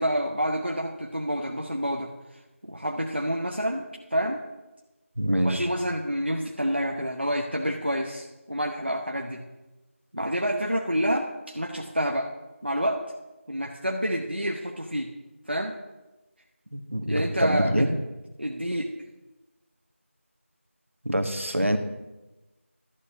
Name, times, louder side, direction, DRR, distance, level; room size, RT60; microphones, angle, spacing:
voice 1, 0.0-2.1 2.6-3.8 4.1-4.4 5.4-9.4 10.1-12.3 12.6-13.0 13.5-15.1 15.5-15.7 17.1-17.9 18.4-18.9, equal, 50° right, 1 dB, 1.0 m, -28 dB
voice 2, 5.2-5.7 16.7-17.9 21.0-21.8, equal, 65° right, 7 dB, 1.6 m, -25 dB
12.0 x 5.4 x 7.1 m, 1.1 s
figure-of-eight pair, 180°, 7 cm